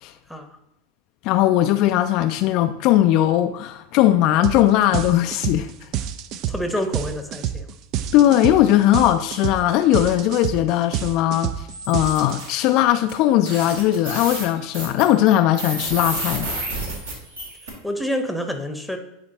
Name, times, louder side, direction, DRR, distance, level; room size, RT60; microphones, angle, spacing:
voice 1, 1.2-5.9 8.1-16.5, left 13 dB, 50° left, 0.3 m, -19 dB
sound 1, 4.4-4.6 4.9-12.7, right 10 dB, 45° right, 0.4 m, -28 dB
voice 2, 6.5-7.7 17.8-19.0, equal, ahead, 0.9 m, -27 dB
sound 2, 11.7-12.5 13.1-13.2 13.4-17.7, right 2 dB, 75° right, 2.0 m, -30 dB
9.5 x 4.3 x 2.8 m
hypercardioid pair, 90°, 0 cm